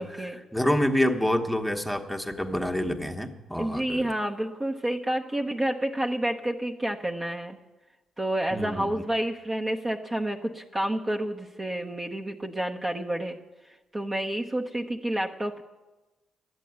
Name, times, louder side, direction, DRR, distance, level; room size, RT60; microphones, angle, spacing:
voice 1, 0.0-0.4 3.6-7.6 8.2-13.4 13.9-15.6, right 1 dB, 20° right, 0 dB, 0.9 m, -29 dB
voice 2, 0.5-4.0 8.5-8.9, left 1 dB, ahead, 4 dB, 1.1 m, -27 dB
11.0 x 8.6 x 9.4 m, 1.1 s
cardioid pair, 90°, 0 cm